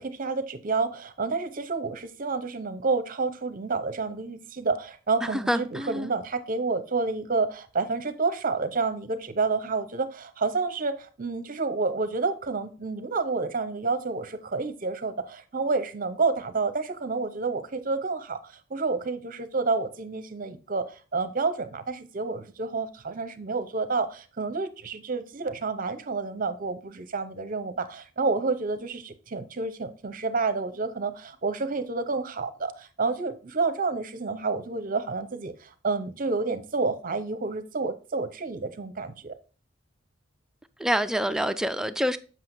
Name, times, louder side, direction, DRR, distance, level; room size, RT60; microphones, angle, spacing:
voice 1, 0.0-39.3, right 4 dB, 45° right, 0.7 m, -29 dB
voice 2, 5.3-6.1 40.8-42.2, equal, 5° right, 0.4 m, -26 dB
7.6 x 6.2 x 2.6 m
head